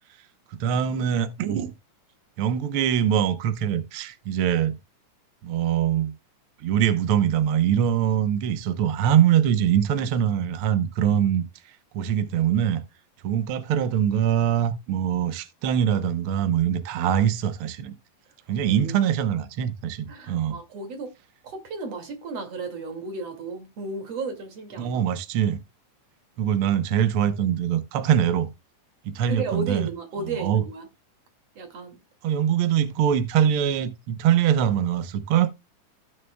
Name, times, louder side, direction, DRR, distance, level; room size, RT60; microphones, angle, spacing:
voice 1, 0.5-1.7 2.4-4.7 5.4-6.1 6.6-11.4 11.9-12.8 13.2-17.9 18.5-20.6 24.8-25.6 26.4-28.5 29.0-29.9 30.2-30.6 32.2-35.5, right 9 dB, 85° right, 1.2 m, -23 dB
voice 2, 18.6-19.0 20.1-21.1 21.4-25.0 29.3-30.9 31.6-31.9, right 3 dB, 50° right, 3.1 m, -34 dB
16.0 x 6.5 x 2.2 m
omnidirectional pair, 3.8 m